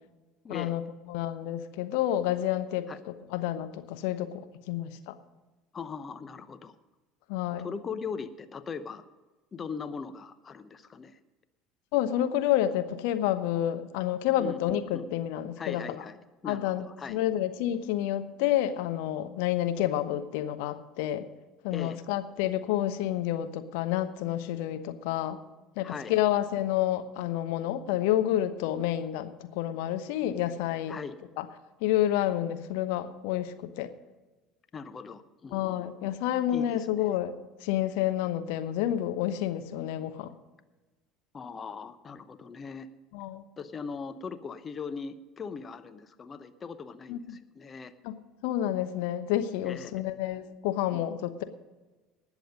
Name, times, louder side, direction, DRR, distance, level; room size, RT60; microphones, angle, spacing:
voice 1, 0.5-0.8 1.1-2.9 3.3-4.4 4.7-5.1 7.3-7.7 11.9-16.0 16.4-21.3 21.6-25.4 25.8-30.9 31.4-31.5 31.8-33.9 35.5-37.3 37.6-40.3 43.1-43.4 47.1-47.4 48.0-48.2 48.4-51.4, left 12 dB, 60° left, 10 dB, 0.9 m, -29 dB
voice 2, 5.7-6.8 7.6-9.0 9.5-11.2 14.4-15.1 15.6-16.2 16.4-17.2 21.7-22.0 25.8-26.2 30.9-31.2 34.7-35.9 36.5-37.0 41.3-42.9 43.6-47.9 49.6-50.1 50.9-51.2, left 5 dB, 30° left, 12 dB, 0.8 m, -40 dB
19.0 x 7.2 x 5.3 m, 1.2 s
figure-of-eight pair, 65°, 0 cm